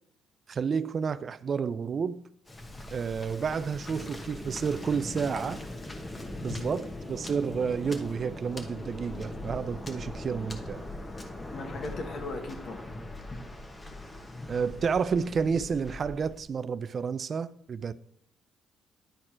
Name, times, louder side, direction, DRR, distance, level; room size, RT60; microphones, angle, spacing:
voice 1, 0.5-2.2 2.9-5.6 6.4-10.8 14.5-17.9, right 6 dB, 45° right, 0.3 m, -30 dB
Waves surf, 2.5-16.4, left 1 dB, 25° left, 1.2 m, -40 dB
voice 2, 11.5-12.9, left 3 dB, 60° left, 1.5 m, -37 dB
10.0 x 4.3 x 4.5 m
cardioid pair, 90°, 0 cm